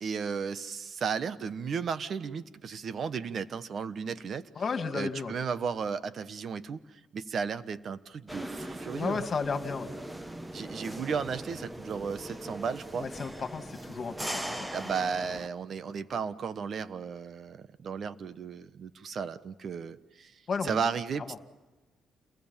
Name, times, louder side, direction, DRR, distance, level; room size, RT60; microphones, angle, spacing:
voice 1, 0.0-4.5 4.9-9.3 10.5-13.1 14.7-20.3 20.6-21.4, right 6 dB, 55° right, 14 dB, 1.2 m, -34 dB
voice 2, 4.6-5.3 8.9-9.9 12.9-14.9 20.5-20.8, left 5 dB, 45° left, 7 dB, 2.5 m, -33 dB
sound 1, 8.3-15.5, right 1 dB, 10° right, 1.3 m, -40 dB
29.0 x 21.5 x 7.4 m, 1.2 s
cardioid pair, 90°, 0 cm